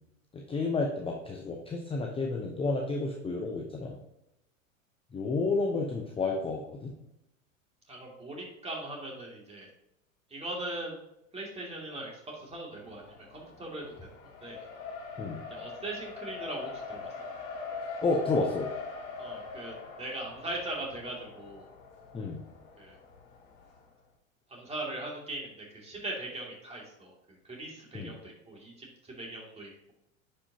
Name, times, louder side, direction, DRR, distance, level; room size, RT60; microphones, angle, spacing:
voice 1, 0.3-4.0 5.1-6.9 15.2-15.4 18.0-18.7 22.1-22.4 27.9-28.1, left 3 dB, 15° left, 0 dB, 0.8 m, -31 dB
voice 2, 7.9-9.7 10.3-11.0 11.3-14.1 14.4-14.7 15.5-17.1 19.2-21.7 22.8-23.0 24.5-28.9 29.2-29.9, right 2 dB, 15° right, -2 dB, 2.3 m, -40 dB
Race car auto racing, 12.8-23.8, left 5 dB, 55° left, 2.2 m, -42 dB
9.9 x 5.2 x 2.8 m, 0.85 s
hypercardioid pair, 95°, 40 cm